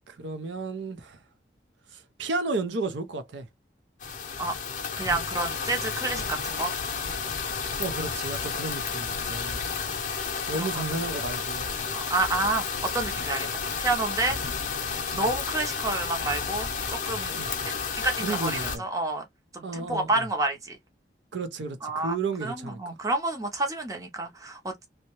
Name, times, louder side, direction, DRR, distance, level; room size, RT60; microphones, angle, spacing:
voice 1, 0.1-1.2 1.9-3.5 7.8-9.6 10.5-11.7 15.1-15.3 17.4-17.7 18.2-18.8 19.6-20.3 21.3-22.8, right 3 dB, 80° right, 0.5 m, -33 dB
sound 1, 4.0-18.8, left 5 dB, 45° left, 0.6 m, -31 dB
voice 2, 5.0-6.7 10.6-10.7 11.9-13.5 13.8-14.4 15.1-17.4 17.6-19.2 19.5-20.8 21.8-22.1 22.4-24.9, right 2 dB, 20° right, 0.6 m, -29 dB
2.7 x 2.1 x 2.9 m
head